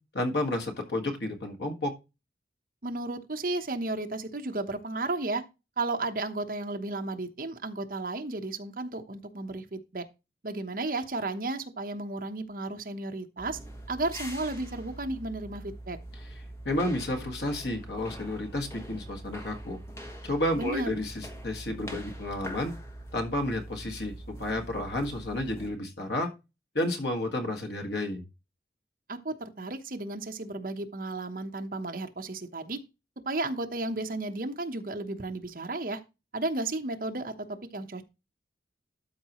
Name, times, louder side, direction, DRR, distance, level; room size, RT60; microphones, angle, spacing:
voice 1, 0.1-1.9 16.7-19.8 20.2-22.7 23.1-26.3 26.8-28.2, left 1 dB, 70° left, 1.7 m, -31 dB
voice 2, 2.8-5.4 5.8-10.0 10.4-13.6 13.9-16.0 20.6-20.9 29.1-32.8 33.2-36.0 36.3-38.0, right 2 dB, 50° right, 1.0 m, -33 dB
sound 1, 13.4-25.7, right 1 dB, 15° left, 1.1 m, -43 dB
12.5 x 4.8 x 3.0 m
head